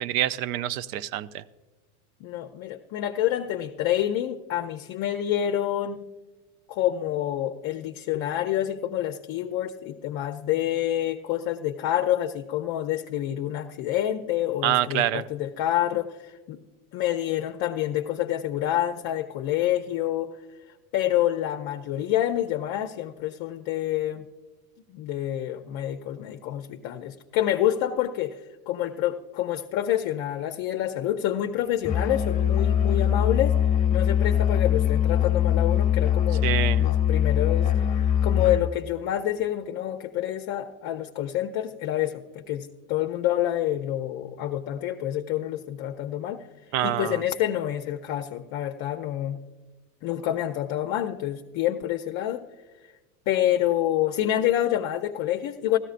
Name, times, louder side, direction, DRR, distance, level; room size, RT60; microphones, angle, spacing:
voice 1, 0.0-1.4 14.6-15.2 36.4-36.9 46.7-47.2, right 13 dB, 70° right, 17 dB, 0.6 m, -26 dB
voice 2, 2.2-6.1 6.7-16.6 16.9-20.3 20.9-24.3 24.9-36.5 36.8-46.5 46.8-49.4 50.0-52.4 53.3-55.8, left 12 dB, 45° left, 5 dB, 0.6 m, -27 dB
Musical instrument, 31.8-38.8, left 9 dB, 20° left, 1.1 m, -22 dB
16.5 x 14.0 x 2.5 m, 1.2 s
supercardioid pair, 120°, 43 cm